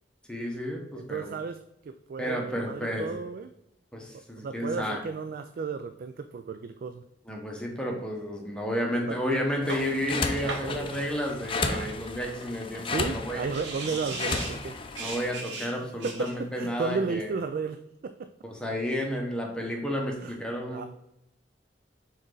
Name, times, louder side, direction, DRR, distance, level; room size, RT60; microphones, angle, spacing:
voice 1, 0.3-1.3 2.2-3.1 3.9-5.0 7.3-13.4 15.0-17.3 18.4-20.9, equal, 5° left, 0 dB, 1.0 m, -31 dB
voice 2, 0.9-3.5 4.1-7.1 8.6-8.7 9.1-9.2 9.6-9.7 10.4-11.0 11.5-12.0 12.8-14.8 15.8-17.8 18.0-18.3 20.2-20.4 20.7-20.9, right 4 dB, 55° right, 8 dB, 0.3 m, -34 dB
sound 1, 9.3-9.4 9.7-10.7 12.7-12.8 13.1-13.2 13.5-14.6 15.0-16.4, right 3 dB, 75° right, 1.2 m, -37 dB
sound 2, 9.6-15.3, left 3 dB, 30° left, 0.5 m, -34 dB
6.2 x 4.0 x 3.8 m, 0.85 s
head